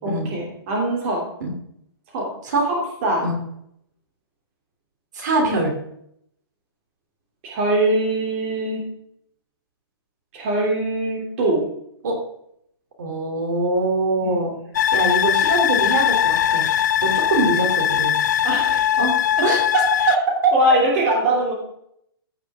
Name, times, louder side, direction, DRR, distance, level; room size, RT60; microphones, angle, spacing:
voice 1, 0.0-1.2 2.1-2.3 2.7-3.2 7.4-8.8 10.3-11.6 18.4-19.0 20.1-20.2 20.5-21.5, right 1 dB, 30° right, -2 dB, 3.2 m, -22 dB
voice 2, 5.1-5.7 12.0-12.2 13.0-14.5 14.9-16.7 17.0-18.1 19.0-19.1 19.4-20.5, right 3 dB, 45° right, 3 dB, 3.3 m, -22 dB
sound 1, 14.7-20.2, left 10 dB, 45° left, 0.4 m, -20 dB
15.5 x 9.8 x 3.7 m, 0.73 s
hypercardioid pair, 170°, 13 cm